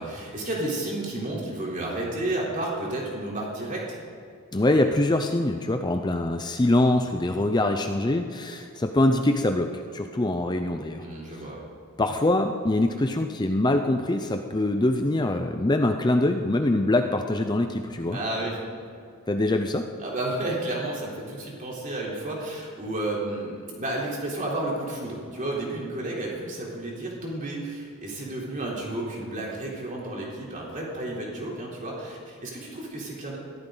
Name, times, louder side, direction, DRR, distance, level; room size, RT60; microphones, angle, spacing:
voice 1, 0.0-4.0 11.0-11.6 18.1-18.6 20.0-33.4, right 1 dB, 35° right, -3 dB, 3.6 m, -32 dB
voice 2, 4.5-11.0 12.0-18.2 19.3-19.9, left 1 dB, 20° left, 6 dB, 0.6 m, -24 dB
22.0 x 14.5 x 4.0 m, 2.4 s
head